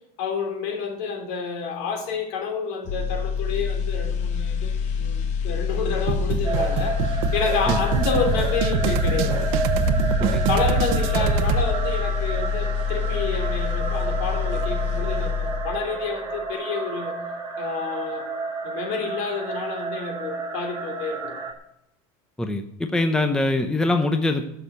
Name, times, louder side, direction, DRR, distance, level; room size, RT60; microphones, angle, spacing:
voice 1, 0.2-4.7 5.0-9.5 10.5-17.2 17.6-18.3 18.6-21.3, left 5 dB, 65° left, 3.2 m, -29 dB
sound 1, 2.8-16.0 16.3-16.5, left 6 dB, 40° left, 1.2 m, -26 dB
sound 2, 6.1-11.7, right 6 dB, 70° right, 1.0 m, -25 dB
sound 3, 6.4-21.5, right 4 dB, 20° right, 1.6 m, -31 dB
voice 2, 22.4-24.5, left 2 dB, 5° left, 0.6 m, -23 dB
11.0 x 6.5 x 9.1 m
cardioid pair, 170°, 19 cm